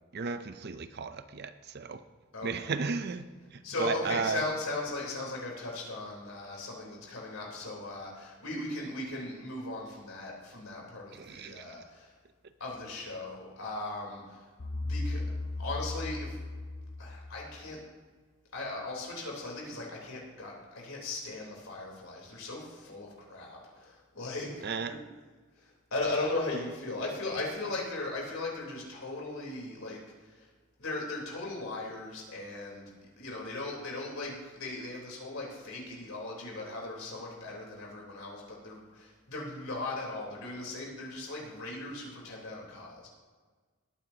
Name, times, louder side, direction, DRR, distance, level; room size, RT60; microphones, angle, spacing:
voice 1, 0.1-2.0 2.4-3.2 3.5-4.4 11.1-11.8 24.6-25.0, right 4 dB, 50° right, 11 dB, 0.5 m, -34 dB
voice 2, 2.3-2.7 3.6-12.1 12.6-14.5 14.8-15.2 15.6-16.4 17.0-17.8 18.5-25.0 25.6-30.5 30.8-32.9 33.2-43.0, left 2 dB, 75° left, -2 dB, 3.7 m, -38 dB
sound 1, 14.6-17.7, left 2 dB, 50° left, 0.7 m, -36 dB
19.0 x 9.1 x 2.9 m, 1.4 s
head